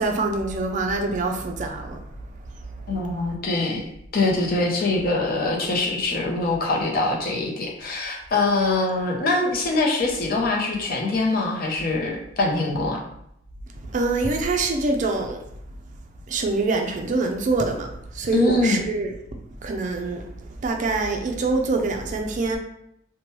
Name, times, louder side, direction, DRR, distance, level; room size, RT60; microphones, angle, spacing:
voice 1, 0.0-2.0 13.9-15.4 16.3-19.1 19.6-20.2 20.6-22.6, right 3 dB, 40° right, 4 dB, 0.4 m, -25 dB
voice 2, 2.9-3.9 4.1-13.0 18.3-18.8, left 2 dB, 50° left, 0 dB, 0.6 m, -23 dB
3.0 x 2.1 x 3.0 m, 0.77 s
head